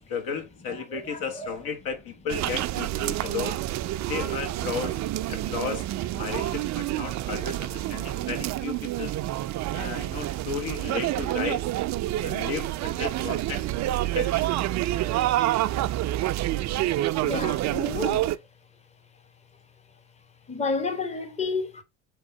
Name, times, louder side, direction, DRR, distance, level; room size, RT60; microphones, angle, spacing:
voice 1, 0.1-3.6 4.1-5.0 5.3-9.1 9.7-11.6 12.2-13.7 14.1-14.5, left 6 dB, 55° left, 1.2 m, -34 dB
voice 2, 0.9-1.6 17.2-18.4 20.5-21.8, left 4 dB, 15° left, 1.0 m, -31 dB
sound 1, 2.3-18.4, right 14 dB, 40° right, 0.4 m, -28 dB
3.5 x 3.5 x 4.3 m
hypercardioid pair, 60°, 42 cm